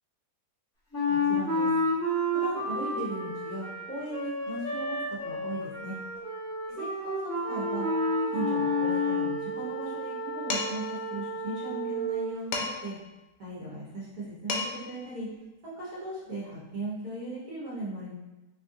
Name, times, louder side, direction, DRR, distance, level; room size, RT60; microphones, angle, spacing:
Wind instrument woodwind instrument, 0.9-9.3, left 2 dB, 10° left, 1.0 m, -30 dB
voice 1, 1.1-1.7 2.4-6.0 6.7-7.9 8.3-12.9 13.4-15.3 15.6-18.1, right 2 dB, 65° right, -8 dB, 1.6 m, -38 dB
sound 1, 7.4-12.3, right 6 dB, 90° left, 1.7 m, -34 dB
Dishes pots and pans, 10.5-10.9 12.5-13.0 14.2-14.3 14.5-15.0, left 3 dB, 70° left, 1.1 m, -32 dB
5.3 x 2.5 x 2.6 m, 1.1 s
omnidirectional pair, 1.7 m